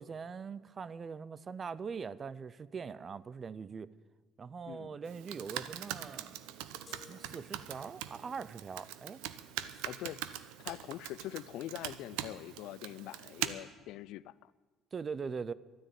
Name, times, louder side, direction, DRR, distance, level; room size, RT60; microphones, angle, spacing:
voice 1, 0.0-3.9 4.4-6.5 6.9-9.2 14.9-15.5, right 5 dB, 30° right, 0.5 m, -42 dB
Computer keyboard, 5.0-13.5, right 13 dB, 90° right, 0.7 m, -42 dB
sound 1, 6.9-8.2, left 5 dB, 30° left, 0.6 m, -58 dB
voice 2, 9.8-10.2 10.6-14.5, left 15 dB, 70° left, 0.4 m, -43 dB
12.5 x 9.9 x 9.0 m
cardioid pair, 120°, 0 cm